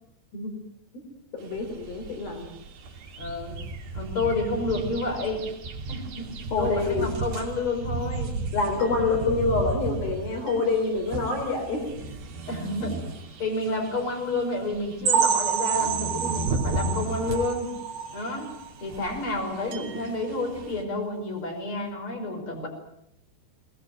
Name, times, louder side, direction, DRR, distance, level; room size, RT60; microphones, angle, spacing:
voice 1, 1.3-2.5 6.5-7.1 8.5-11.9, left 3 dB, 55° left, 3 dB, 5.3 m, -26 dB
sound 1, 1.4-20.8, right 3 dB, 55° right, 4.4 m, -35 dB
voice 2, 3.2-3.6 3.9-5.5 5.9-8.4 9.0-9.2 12.5-13.1 13.4-17.7 18.1-18.5 18.8-22.7, left 2 dB, 30° left, 3 dB, 6.1 m, -30 dB
sound 2, 15.1-18.7 19.1-19.2 19.6-19.7 20.2-20.3, right 7 dB, 75° right, 4.4 m, -27 dB
24.0 x 20.0 x 9.2 m, 0.74 s
omnidirectional pair, 5.1 m